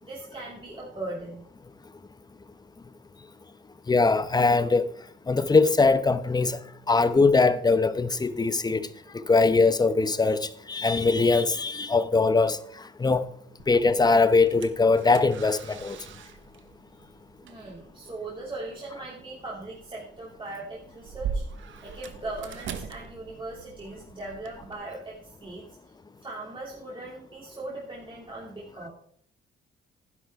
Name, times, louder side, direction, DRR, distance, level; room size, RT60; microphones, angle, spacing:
voice 1, 0.0-1.4 16.9-17.1 17.4-21.4 21.8-25.7 26.2-28.9, right 2 dB, 25° right, 2.9 m, -39 dB
voice 2, 3.9-4.9 5.3-6.6 6.9-8.9 9.1-12.6 13.0-13.2 13.7-16.0, left 3 dB, 20° left, 0.8 m, -21 dB
sound 1, 13.6-24.7, right 6 dB, 75° right, 1.2 m, -41 dB
11.5 x 10.5 x 3.5 m
cardioid pair, 90°, 20 cm